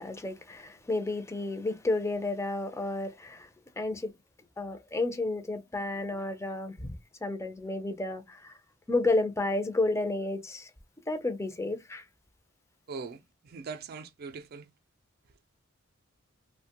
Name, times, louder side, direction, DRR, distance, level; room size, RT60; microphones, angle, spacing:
voice 1, 0.0-3.5 3.8-4.1 4.6-8.6 8.9-10.7 11.1-12.1, left 2 dB, 15° left, 0.4 m, -31 dB
voice 2, 12.9-14.7, right 5 dB, 50° right, 0.4 m, -41 dB
2.8 x 2.1 x 2.8 m
head